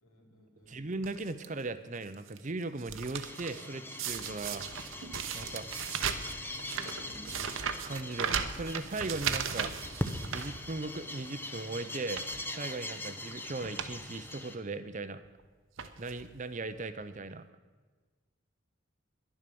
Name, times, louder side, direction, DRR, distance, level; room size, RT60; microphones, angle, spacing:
voice 1, 0.0-0.9 6.6-7.6, equal, 85° left, 0 dB, 3.3 m, -53 dB
voice 2, 0.7-4.7 5.3-5.7 7.8-9.7 10.3-12.2 12.5-15.2 16.0-17.5, right 3 dB, 35° right, 12 dB, 0.6 m, -38 dB
sound 1, 1.0-1.5 2.0-2.4 2.6-3.6 4.0-11.1 11.5-11.6 12.0-12.4 13.2-13.3 13.6-13.9 14.3-14.4 15.2-15.4 15.8-16.3 17.0-17.1 17.3-17.4, right 7 dB, 65° right, 0.9 m, -37 dB
sound 2, 3.2-14.6, left 1 dB, 10° left, 0.8 m, -42 dB
11.0 x 11.0 x 6.9 m, 1.4 s
head